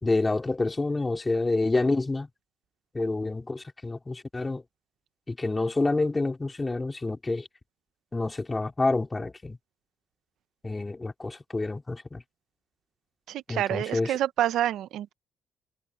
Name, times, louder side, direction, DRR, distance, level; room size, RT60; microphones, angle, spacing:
voice 1, 0.0-2.3 2.9-4.6 5.3-7.5 8.1-9.6 10.6-12.2 13.5-14.2, left 2 dB, 20° left, 4.0 m, -28 dB
voice 2, 13.3-15.1, right 12 dB, 80° right, 0.8 m, -28 dB
cardioid pair, 90°, 0 cm